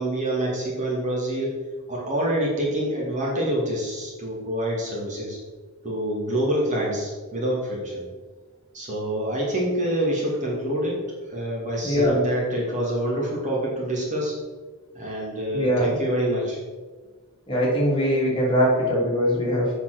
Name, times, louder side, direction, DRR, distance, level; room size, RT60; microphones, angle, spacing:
voice 1, 0.0-1.5 1.9-5.4 5.8-8.0 8.7-11.0 11.3-14.4 14.9-16.6, right 1 dB, 35° right, -4 dB, 2.2 m, -26 dB
voice 2, 11.8-12.2 15.5-16.0 17.5-19.7, equal, 25° left, -5 dB, 3.0 m, -22 dB
7.6 x 5.7 x 6.0 m, 1.4 s
head